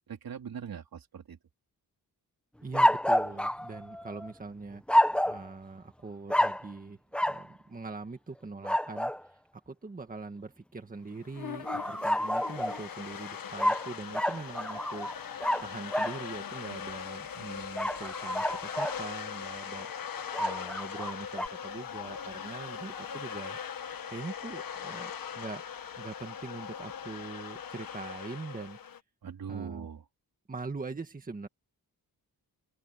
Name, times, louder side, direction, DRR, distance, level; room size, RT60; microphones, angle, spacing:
voice 1, 0.1-1.4 29.2-30.0, right 7 dB, 65° right, 3.7 m, -41 dB
voice 2, 2.6-4.8 5.3-9.4 9.7-15.1 15.6-19.9 20.4-23.6 24.1-25.6 26.0-28.8 29.5-29.9 30.5-31.5, right 3 dB, 20° right, 1.8 m, -42 dB
sound 1, 2.7-4.3 4.9-5.5 6.3-6.7 7.1-7.4 8.6-9.2 11.6-12.8 13.6-16.2 17.8-19.0 20.3-21.5, equal, 5° left, 0.9 m, -28 dB
sound 2, 11.1-29.0, left 8 dB, 65° left, 1.6 m, -40 dB
open air
wide cardioid pair, 175°, 38 cm